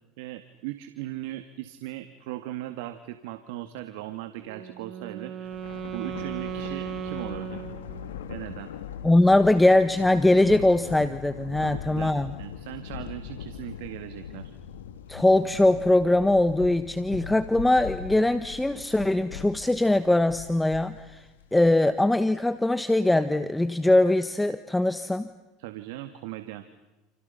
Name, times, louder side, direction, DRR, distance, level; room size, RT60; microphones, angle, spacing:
voice 1, 0.2-5.6 5.9-7.6 8.3-8.7 11.6-14.5 25.6-26.6, right 15 dB, 75° right, 10 dB, 1.9 m, -38 dB
Wind instrument woodwind instrument, 4.4-8.4, right 9 dB, 40° right, 2.7 m, -37 dB
Thunder, 5.5-22.1, left 8 dB, 90° left, 2.0 m, -41 dB
voice 2, 9.0-12.3 15.1-25.3, left 1 dB, 5° left, 12 dB, 1.2 m, -21 dB
30.0 x 29.5 x 5.8 m, 1.1 s
supercardioid pair, 95°, 0 cm